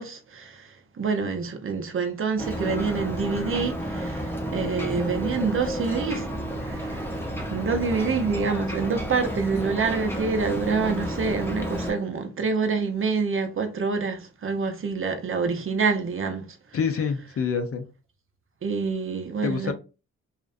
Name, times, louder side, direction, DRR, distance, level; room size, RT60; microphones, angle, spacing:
voice 1, 0.0-6.3 6.6-7.2 7.5-16.6 18.6-19.7, right 4 dB, 45° right, 0.6 m, -27 dB
Ocean, 2.4-11.9, right 1 dB, 5° left, 0.7 m, -31 dB
voice 2, 16.7-17.8 19.4-19.7, left 6 dB, 45° left, 0.5 m, -26 dB
2.4 x 2.1 x 2.5 m
supercardioid pair, 55°, 31 cm